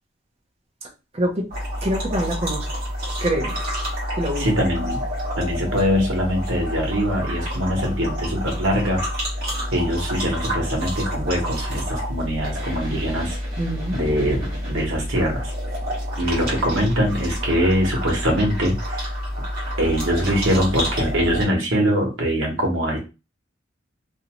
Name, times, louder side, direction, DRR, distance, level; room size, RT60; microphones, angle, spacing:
voice 1, 0.8-1.5 1.8-2.7 3.2-3.5 4.2-4.5 13.6-14.0, equal, 35° right, 1 dB, 0.7 m, -25 dB
sound 1, 1.5-21.5, equal, 50° right, 1.2 m, -28 dB
voice 2, 4.3-5.0 5.4-9.0 9.7-13.4 13.9-15.5 16.2-19.1 19.8-23.0, equal, 85° right, 0 dB, 1.0 m, -23 dB
2.5 x 2.3 x 2.9 m, 0.30 s
head